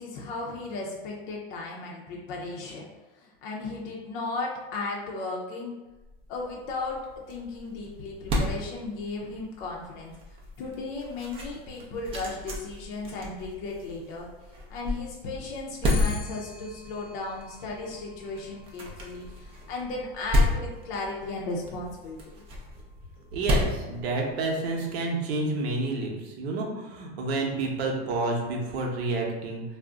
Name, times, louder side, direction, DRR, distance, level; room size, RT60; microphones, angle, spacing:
voice 1, 0.0-2.9 3.2-5.8 6.3-7.0 7.3-10.1 10.6-14.3 14.7-22.2, left 3 dB, 50° left, -2 dB, 0.5 m, -35 dB
sound 1, 6.0-24.7, left 1 dB, 20° right, 0.4 m, -33 dB
Clock, 15.8-25.2, left 4 dB, 20° left, 0.7 m, -49 dB
voice 2, 23.3-29.6, right 2 dB, 85° right, 0 dB, 0.8 m, -29 dB
2.4 x 2.1 x 3.6 m, 1.1 s
supercardioid pair, 145°, 31 cm